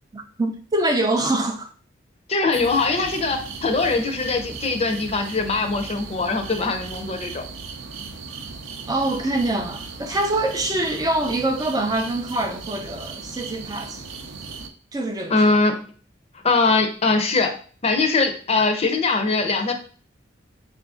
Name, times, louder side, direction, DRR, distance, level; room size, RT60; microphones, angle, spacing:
voice 1, 0.1-1.7 8.9-14.0 14.9-15.6, right 2 dB, 20° right, 0.3 m, -24 dB
voice 2, 2.3-7.4 15.3-15.8 16.4-17.5 17.8-19.7, left 3 dB, 30° left, 0.5 m, -21 dB
sound 1, 2.5-14.7, right 4 dB, 80° right, 0.5 m, -37 dB
3.8 x 2.5 x 3.6 m
head